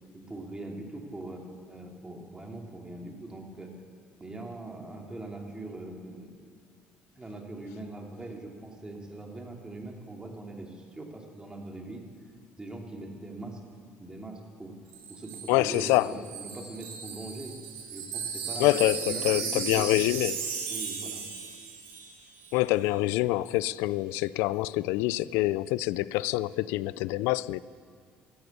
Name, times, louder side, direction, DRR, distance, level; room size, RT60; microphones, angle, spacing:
voice 1, 0.1-1.4 1.7-3.7 4.2-6.3 7.1-12.0 12.6-13.6 14.0-14.7 15.1-17.5 17.9-18.8 19.0-19.9 20.7-21.3, right 2 dB, 20° right, 2.8 m, -41 dB
Wind chime, 14.9-22.2 22.4-22.6, right 6 dB, 85° right, 2.9 m, -36 dB
voice 2, 15.5-16.1 18.6-20.4 22.5-27.6, left 18 dB, 90° left, 0.4 m, -26 dB
14.0 x 12.0 x 8.4 m
supercardioid pair, 85°, 4 cm